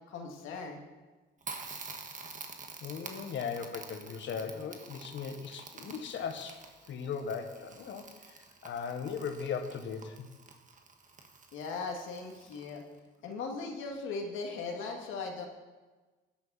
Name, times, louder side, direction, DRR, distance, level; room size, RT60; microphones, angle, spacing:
voice 1, 0.1-0.8 11.5-12.8 13.2-15.5, left 4 dB, 90° left, 1 dB, 2.1 m, -38 dB
Crackle, 1.4-13.0, right 4 dB, 40° right, 1.7 m, -48 dB
voice 2, 2.8-6.6 6.9-8.1 8.6-10.3, left 6 dB, 70° left, 6 dB, 1.5 m, -38 dB
16.0 x 10.5 x 4.2 m, 1.2 s
cardioid pair, 90°, 20 cm